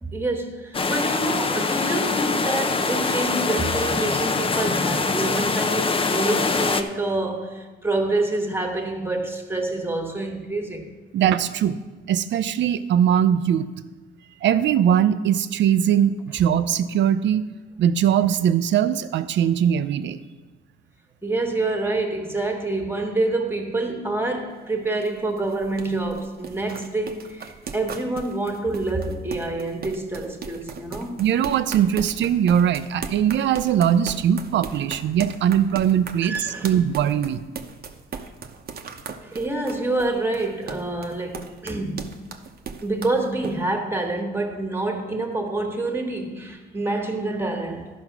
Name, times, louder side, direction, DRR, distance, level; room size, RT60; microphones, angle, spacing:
voice 1, 0.0-10.9 21.2-31.2 36.2-36.8 39.2-42.2 42.8-47.9, right 2 dB, 10° right, 1.5 m, -27 dB
sound 1, 0.7-6.8, left 4 dB, 25° left, 0.6 m, -24 dB
voice 2, 11.1-11.8 12.1-13.7 14.4-17.4 17.8-20.2 31.2-36.3 36.6-37.4, right 9 dB, 65° right, 0.6 m, -20 dB
sound 2, 24.5-43.5, right 6 dB, 50° right, 0.9 m, -38 dB
12.5 x 5.2 x 6.0 m
cardioid pair, 90°, 20 cm